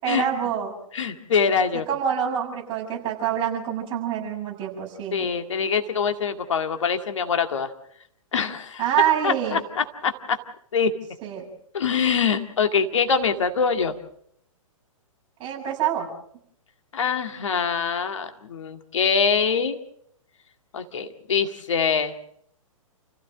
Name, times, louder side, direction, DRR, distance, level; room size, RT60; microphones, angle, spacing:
voice 1, 0.0-0.7 1.9-5.3 8.8-9.6 11.2-11.5 15.4-16.1, right 9 dB, 30° right, 0 dB, 7.1 m, -26 dB
voice 2, 0.9-1.9 5.1-7.7 8.3-8.9 9.2-10.4 10.7-10.9 11.7-14.0 16.9-19.8 20.7-22.1, left 6 dB, 60° left, 6 dB, 2.1 m, -24 dB
29.5 x 16.0 x 6.3 m, 0.68 s
figure-of-eight pair, 115°, 18 cm